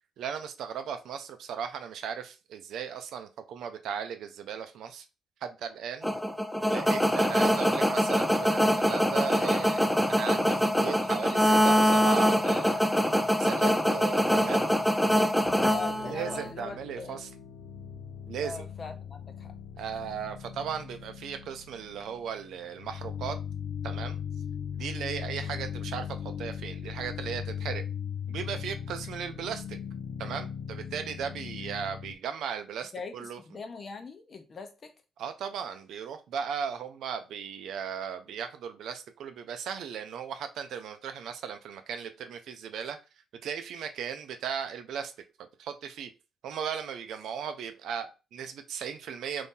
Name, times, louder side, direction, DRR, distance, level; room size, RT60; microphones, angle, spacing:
voice 1, 0.2-5.0 5.4-6.1 6.7-12.9 13.4-14.7 16.0-17.3 18.3-18.7 19.8-23.4 23.8-24.2 24.7-27.8 28.3-29.8 30.2-33.4 35.2-43.0 43.4-45.1 45.6-46.1 46.4-49.5, right 7 dB, 75° right, 0.5 m, -37 dB
sound 1, 6.0-16.5, equal, ahead, 0.4 m, -24 dB
sound 2, 15.5-32.1, left 8 dB, 70° left, 0.4 m, -39 dB
voice 2, 15.7-17.2 18.4-19.5 32.9-34.9, left 4 dB, 40° left, 0.8 m, -40 dB
2.7 x 2.7 x 3.6 m
cardioid pair, 90°, 0 cm